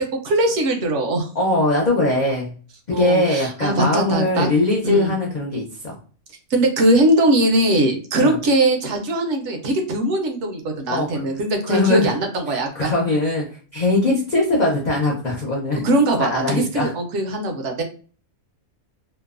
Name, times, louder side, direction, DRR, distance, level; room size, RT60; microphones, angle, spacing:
voice 1, 0.2-1.3 2.9-4.5 4.8-5.1 6.5-12.9 15.8-17.8, right 1 dB, 65° right, 4 dB, 0.8 m, -20 dB
voice 2, 1.3-2.5 2.9-6.0 8.1-8.4 10.9-11.3 11.6-12.1 12.5-13.5 13.7-15.9 16.2-16.9, left 2 dB, 80° left, -2 dB, 0.4 m, -21 dB
3.0 x 2.0 x 2.3 m, 0.39 s
omnidirectional pair, 1.5 m